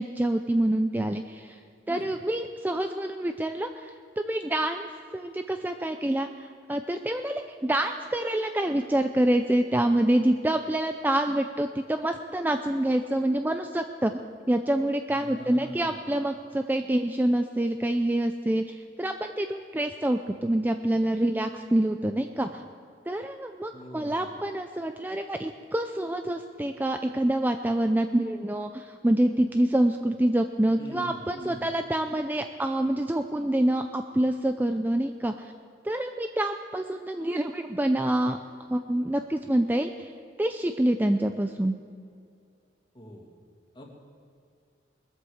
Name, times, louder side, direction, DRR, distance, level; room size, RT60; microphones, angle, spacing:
voice 1, 0.0-1.6 1.9-4.9 5.1-14.1 14.5-22.6 23.1-35.5 35.8-38.4 38.7-40.1 40.4-41.7, right 1 dB, 10° right, 6 dB, 0.4 m, -26 dB
voice 2, 15.1-16.0 23.7-24.4 30.8-31.7 42.9-43.3 43.7-43.9, equal, 25° left, 0 dB, 2.3 m, -43 dB
21.0 x 8.2 x 7.1 m, 2.4 s
head